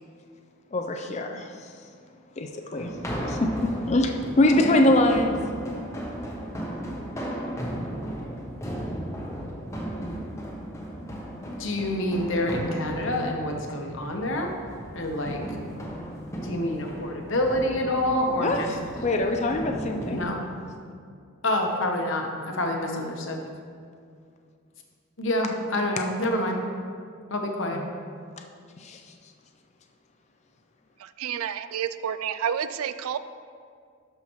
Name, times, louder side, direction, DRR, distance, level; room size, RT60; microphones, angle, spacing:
voice 1, 0.7-1.5 2.4-3.0 3.3-5.4 18.4-18.6 19.0-20.2 27.7-27.9 28.8-29.0, left 1 dB, 30° left, 4 dB, 0.4 m, -23 dB
sound 1, 2.8-20.3, equal, 15° left, 0.8 m, -35 dB
voice 2, 11.4-14.5 14.9-15.4 16.4-18.7 20.1-20.4 21.4-23.4 25.2-26.6 27.3-27.8, left 1 dB, 65° left, 2 dB, 0.9 m, -27 dB
voice 3, 31.0-33.2, right 8 dB, 85° right, 13 dB, 0.3 m, -30 dB
11.5 x 5.6 x 3.1 m, 2.2 s
head